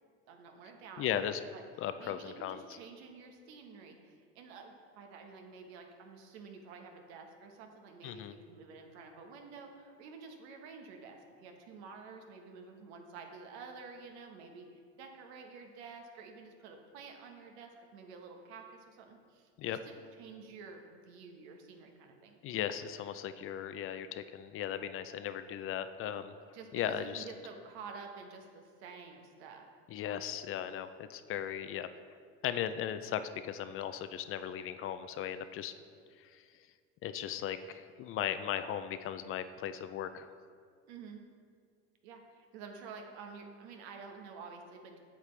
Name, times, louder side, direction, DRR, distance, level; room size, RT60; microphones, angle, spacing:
voice 1, 0.3-1.2 1.5-1.6 2.0-22.4 26.5-29.7 40.9-41.2 42.0-45.0, right 5 dB, 75° right, 3 dB, 1.2 m, -50 dB
voice 2, 1.0-1.4 1.8-2.6 8.0-8.3 19.6-19.8 22.4-26.3 26.7-27.2 29.9-31.9 32.4-35.7 37.0-40.3, left 10 dB, 40° left, 11 dB, 0.4 m, -37 dB
8.4 x 7.3 x 3.3 m, 2.1 s
hypercardioid pair, 90°, 33 cm